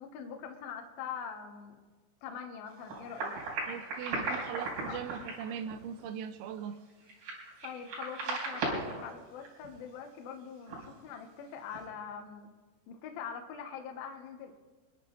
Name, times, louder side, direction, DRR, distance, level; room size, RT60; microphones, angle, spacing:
voice 1, 0.0-1.8 2.2-3.4 4.9-5.0 7.6-12.5 12.9-14.5, left 7 dB, 75° left, 4 dB, 2.2 m, -43 dB
sound 1, 2.7-9.1 9.4-9.7 10.0-10.1 10.4-10.5 10.6-11.0 11.6-11.8, right 3 dB, 50° right, 5.5 m, -37 dB
voice 2, 3.7-6.8, right 8 dB, 80° right, 9 dB, 2.9 m, -40 dB
27.0 x 11.0 x 3.1 m, 1.3 s
omnidirectional pair, 5.8 m